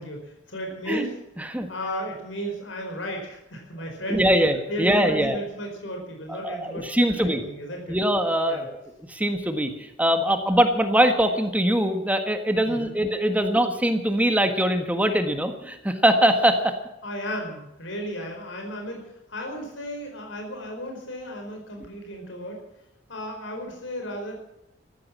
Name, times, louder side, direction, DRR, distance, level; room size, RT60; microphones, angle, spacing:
voice 1, 0.0-1.2 1.7-4.3 4.7-8.0 8.4-8.7 12.6-13.0 17.0-22.6 23.1-24.3, equal, 80° left, 2 dB, 4.8 m, -34 dB
voice 2, 1.4-1.7 4.1-5.4 6.3-7.4 7.9-8.8 9.1-16.7, right 1 dB, 10° right, 7 dB, 1.5 m, -22 dB
14.0 x 13.5 x 7.4 m, 0.90 s
head